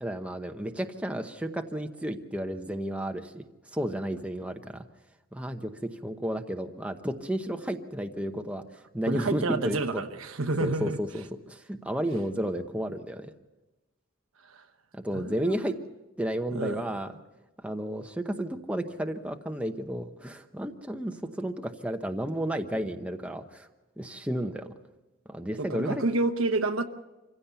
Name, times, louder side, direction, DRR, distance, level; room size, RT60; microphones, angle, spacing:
voice 1, 0.0-3.4 3.7-4.8 5.3-8.6 8.9-10.0 10.6-13.3 14.9-15.7 16.2-17.1 17.6-23.7 24.0-24.7 25.3-26.0, equal, 5° right, 5 dB, 0.9 m, -32 dB
voice 2, 9.1-11.0 14.4-14.6 15.1-15.8 16.5-16.8 25.6-26.8, right 3 dB, 70° right, 9 dB, 1.1 m, -29 dB
25.5 x 16.0 x 7.0 m, 1.1 s
head